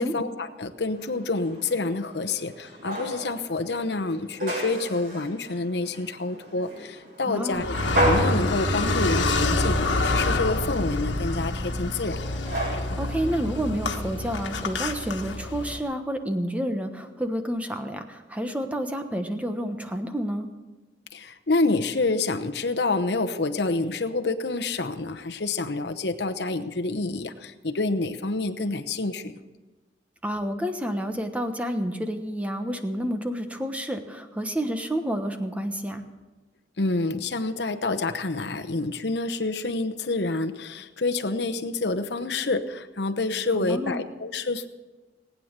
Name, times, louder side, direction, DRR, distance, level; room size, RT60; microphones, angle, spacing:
voice 1, 0.0-7.8 8.0-12.2 21.1-29.3 36.8-44.7, left 3 dB, 65° left, 8 dB, 0.9 m, -28 dB
sound 1, 0.9-14.6, equal, 55° right, 6.8 m, -34 dB
voice 2, 7.2-7.6 13.0-20.5 30.2-36.0 43.5-44.0, equal, 10° right, 6 dB, 1.1 m, -29 dB
Car, 7.5-15.8, left 2 dB, 85° left, 1.4 m, -27 dB
19.5 x 9.5 x 6.7 m, 1.2 s
head